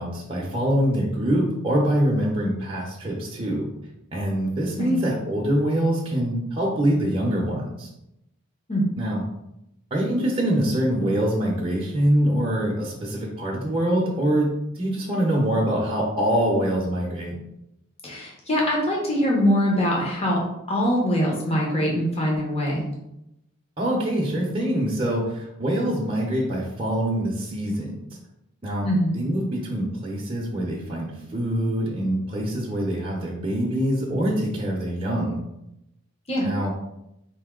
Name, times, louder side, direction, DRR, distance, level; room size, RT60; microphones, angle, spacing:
voice 1, 0.0-3.7 4.1-7.9 9.0-9.2 9.9-17.4 23.8-28.0 28.6-28.9 29.1-35.4 36.4-36.7, right 1 dB, 25° right, -4 dB, 0.6 m, -24 dB
voice 2, 18.0-20.4 20.7-22.8 28.8-29.1 36.3-36.5, equal, 30° left, -3 dB, 0.9 m, -23 dB
4.3 x 2.7 x 3.7 m, 0.86 s
head